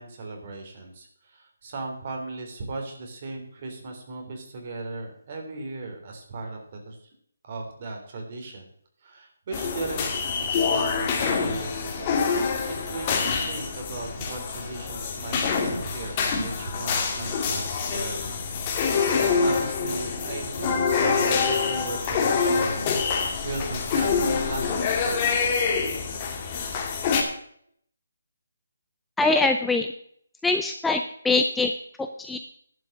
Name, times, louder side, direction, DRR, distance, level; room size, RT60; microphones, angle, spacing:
voice 1, 0.0-7.0 7.4-8.6 9.0-10.1 10.4-12.4 12.9-18.4 18.8-23.0 23.4-25.2, right 3 dB, 40° right, 2 dB, 3.4 m, -37 dB
sound 1, 9.5-27.2, left 5 dB, 25° left, 2.1 m, -26 dB
voice 2, 29.2-29.9 30.4-31.7 32.0-32.4, left 3 dB, 5° left, 5 dB, 0.5 m, -23 dB
11.0 x 6.2 x 7.6 m, 0.65 s
hypercardioid pair, 160°, 0 cm